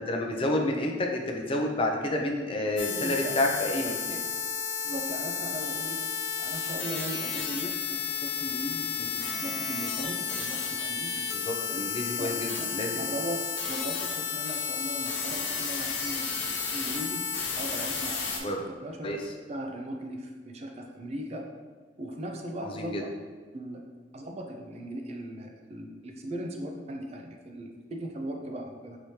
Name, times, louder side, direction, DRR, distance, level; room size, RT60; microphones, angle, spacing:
voice 1, 0.0-4.2 11.3-13.0 18.4-18.6 19.0-19.2 22.6-23.0, left 1 dB, 30° left, 1 dB, 0.4 m, -29 dB
sound 1, 2.8-18.4, left 6 dB, 85° left, 0.6 m, -32 dB
voice 2, 2.9-3.3 3.8-4.0 4.8-6.0 6.4-11.3 12.2-12.3 13.0-17.3 17.6-18.5 18.8-19.2 19.5-21.5 22.0-23.1 23.5-23.9 24.1-29.0, right 1 dB, 35° right, 3 dB, 0.4 m, -38 dB
4.8 x 3.1 x 2.8 m, 1.5 s
head